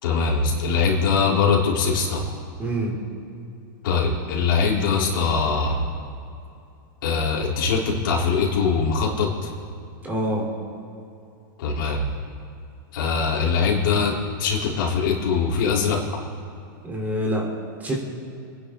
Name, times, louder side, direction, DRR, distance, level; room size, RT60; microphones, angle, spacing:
voice 1, 0.0-2.3 3.8-5.9 7.0-9.5 11.6-12.0 12.9-16.0, left 5 dB, 70° left, -3 dB, 3.7 m, -22 dB
voice 2, 2.6-3.0 10.0-10.4 16.8-17.4 17.8-18.0, equal, 15° right, -1 dB, 3.6 m, -25 dB
28.0 x 10.5 x 3.9 m, 2.6 s
hypercardioid pair, 135°, 12 cm